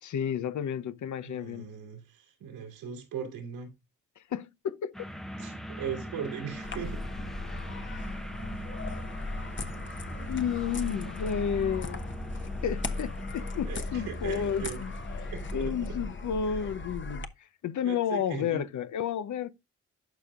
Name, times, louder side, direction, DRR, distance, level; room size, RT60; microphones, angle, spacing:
voice 1, 0.0-1.7 4.2-4.9 10.2-12.1 12.6-14.9 15.2-19.5, left 8 dB, 55° left, 0.8 m, -32 dB
voice 2, 1.2-3.7 5.4-7.0 13.4-14.8 15.3-16.0 16.5-16.6 17.8-18.6, right 7 dB, 85° right, 3.1 m, -39 dB
sound 1, 4.9-16.4, equal, ahead, 0.7 m, -41 dB
sound 2, 6.6-17.3, left 2 dB, 35° left, 1.0 m, -37 dB
11.5 x 5.0 x 2.4 m
supercardioid pair, 55°, 36 cm